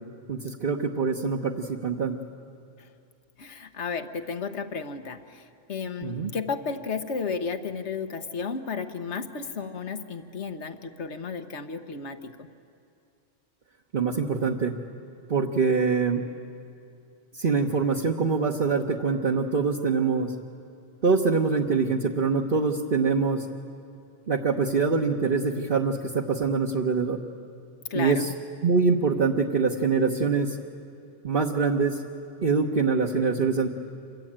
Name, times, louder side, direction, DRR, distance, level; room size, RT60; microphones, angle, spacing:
voice 1, 0.3-2.2 6.0-6.3 13.9-14.7 15.3-16.2 17.3-20.3 21.0-23.4 24.3-27.2 27.9-28.3 28.6-30.6 31.2-32.0 32.4-33.7, right 4 dB, 50° right, -1 dB, 1.4 m, -24 dB
voice 2, 3.4-12.5 27.9-28.3, left 5 dB, 75° left, 8 dB, 1.5 m, -33 dB
28.0 x 24.0 x 8.9 m, 2.5 s
omnidirectional pair, 1.2 m